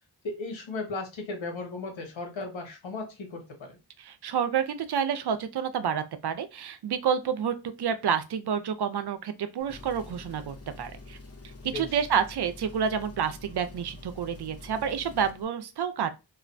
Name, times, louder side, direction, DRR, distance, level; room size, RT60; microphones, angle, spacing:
voice 1, 0.2-3.8 11.6-12.0, left 3 dB, 85° left, 0.9 m, -36 dB
voice 2, 4.0-11.2 11.7-16.1, right 7 dB, 60° right, 0.5 m, -29 dB
Engine, 9.6-15.4, left 3 dB, 30° left, 0.7 m, -46 dB
2.4 x 2.1 x 2.5 m
cardioid pair, 40°, 46 cm